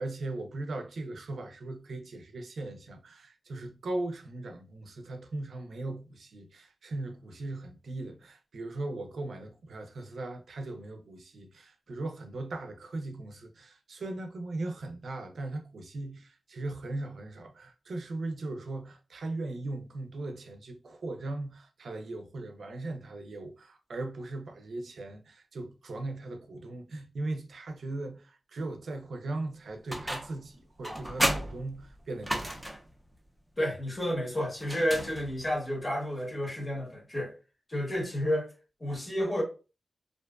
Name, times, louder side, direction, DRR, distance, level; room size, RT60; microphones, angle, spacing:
voice 1, 0.0-32.7, right 2 dB, 85° right, 0.4 m, -38 dB
sound 1, 29.9-30.5 30.8-32.9 34.6-35.6, right 1 dB, 10° right, 0.4 m, -33 dB
voice 2, 33.6-37.3 37.7-38.5 38.8-39.4, equal, 25° left, 0.8 m, -31 dB
2.5 x 2.2 x 2.3 m
wide cardioid pair, 115°, 0 cm